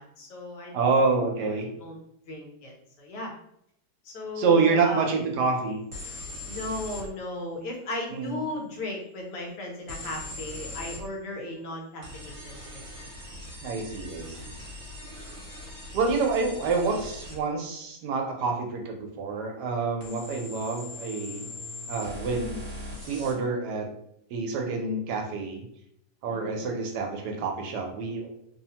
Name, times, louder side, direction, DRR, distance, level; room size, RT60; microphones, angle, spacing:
voice 1, 0.0-0.9 1.8-2.0 2.3-2.7 3.0-3.3 4.0-5.3 6.5-12.8 26.3-26.6, left 2 dB, 75° left, -1 dB, 1.3 m, -36 dB
voice 2, 0.7-1.7 4.4-5.8 8.1-8.4 13.6-14.5 15.9-21.4 21.9-22.6 23.1-23.9 24.3-25.7 26.2-28.3, right 4 dB, 75° right, 2 dB, 1.1 m, -27 dB
sound 1, 5.9-7.1 9.9-11.0 12.0-17.4 20.0-23.3, left 2 dB, 40° right, 1.2 m, -40 dB
3.0 x 2.0 x 2.8 m, 0.74 s
omnidirectional pair, 1.8 m